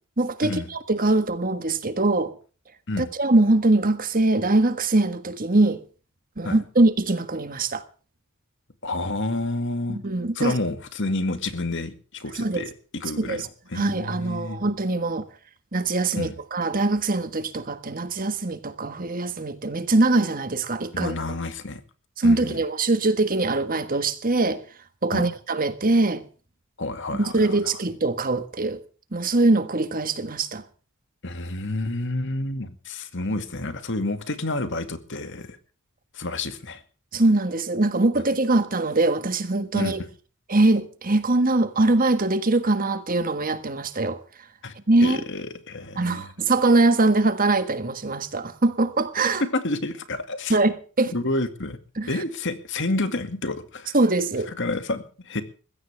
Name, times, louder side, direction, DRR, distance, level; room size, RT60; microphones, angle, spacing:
voice 1, 0.2-2.4 3.0-5.8 6.4-7.8 9.9-10.5 12.3-12.7 13.2-13.5 13.7-15.2 15.7-21.2 22.2-24.6 25.0-26.2 27.3-28.8 29.1-30.6 37.1-40.0 40.5-44.2 44.9-45.2 46.0-49.4 50.5-51.1 52.0-52.2 53.9-54.5, right 2 dB, 40° right, 1.5 m, -22 dB
voice 2, 8.8-10.0 10.3-14.6 16.2-16.3 20.9-21.8 22.2-22.6 25.1-25.3 26.8-27.8 31.2-35.6 36.1-36.8 39.7-40.1 44.6-44.7 45.0-46.3 49.5-50.6 51.1-51.8 52.1-54.0 54.5-55.4, left 2 dB, 55° left, 2.2 m, -29 dB
21.0 x 16.0 x 3.5 m
head